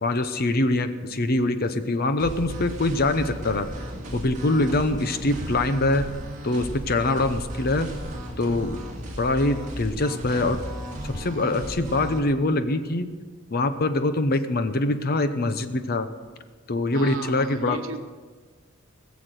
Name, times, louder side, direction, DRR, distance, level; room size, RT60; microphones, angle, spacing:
voice 1, 0.0-3.7 4.1-6.1 6.4-7.9 8.4-8.8 9.2-10.6 11.0-13.1 13.5-16.1 16.7-17.8, left 2 dB, 45° left, 10 dB, 0.8 m, -24 dB
sound 1, 2.2-12.2, equal, 40° right, 2.2 m, -35 dB
voice 2, 16.9-18.0, right 3 dB, 70° right, 6 dB, 1.2 m, -36 dB
20.5 x 7.3 x 6.4 m, 1.5 s
head